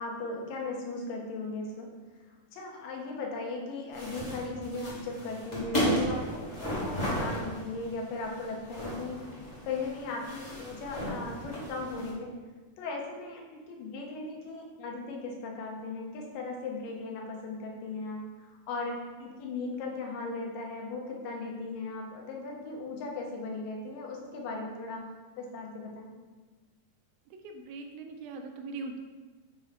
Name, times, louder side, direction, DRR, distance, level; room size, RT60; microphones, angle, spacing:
voice 1, 0.0-1.9 2.5-9.2 9.6-12.3 12.8-25.1 25.4-26.1, left 3 dB, 70° left, 1 dB, 2.5 m, -37 dB
sound 1, 3.9-12.1, equal, 25° left, 0.8 m, -34 dB
voice 2, 27.4-29.0, right 3 dB, 80° right, 4 dB, 2.4 m, -40 dB
6.9 x 4.7 x 4.1 m, 1.3 s
omnidirectional pair, 4.3 m